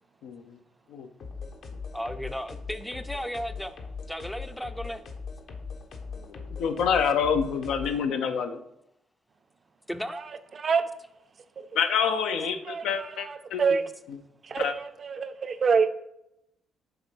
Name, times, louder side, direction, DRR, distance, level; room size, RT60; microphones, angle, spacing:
voice 1, 0.2-0.6 0.9-1.1 6.3-8.6 11.7-13.6 14.6-14.7, left 6 dB, 85° left, 0.7 m, -27 dB
sound 1, 1.2-8.0, left 5 dB, 65° left, 1.1 m, -40 dB
voice 2, 1.9-3.8 4.1-5.0 9.9-10.2, equal, 5° left, 0.5 m, -35 dB
voice 3, 10.1-10.9 11.6-11.8 12.4-13.8 14.4-15.9, right 5 dB, 45° right, 0.6 m, -27 dB
6.9 x 3.6 x 5.4 m
cardioid pair, 90°, 0 cm